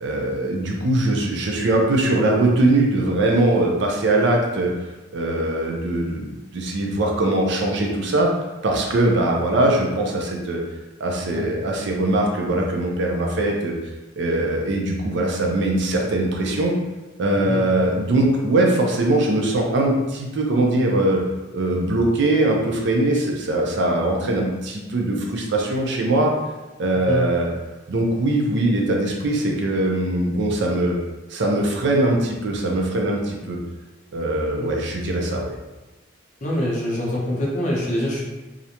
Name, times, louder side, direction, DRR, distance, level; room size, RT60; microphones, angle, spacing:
voice 1, 0.0-4.7 5.1-6.3 6.5-8.3 8.6-10.6 11.0-13.8 14.2-16.8 17.2-21.2 21.5-26.3 26.8-27.5 27.9-31.0 31.3-33.6 34.1-35.5, right 2 dB, 60° right, 0 dB, 0.4 m, -21 dB
voice 2, 36.4-38.2, left 1 dB, 40° left, -4 dB, 0.6 m, -24 dB
2.4 x 2.1 x 2.8 m, 1.1 s
head